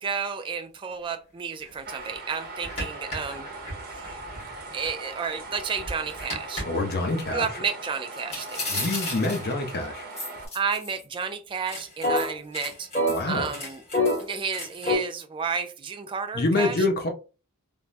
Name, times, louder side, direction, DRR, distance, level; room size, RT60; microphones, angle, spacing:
voice 1, 0.0-3.5 3.9-4.2 4.7-6.6 7.3-8.9 10.5-12.9 13.3-13.8 14.2-16.8, right 6 dB, 25° right, 0.3 m, -31 dB
sound 1, 1.6-1.7 2.1-2.2 2.6-4.9 5.3-6.6 8.3-9.6 10.2-11.2 11.5-15.0, left 1 dB, 30° left, 1.5 m, -29 dB
sound 2, 1.8-10.5, right 2 dB, 45° right, 0.7 m, -40 dB
voice 2, 6.6-7.5 8.7-10.1 13.1-13.5 16.3-17.1, left 2 dB, 45° left, 0.6 m, -26 dB
3.4 x 2.1 x 2.4 m
head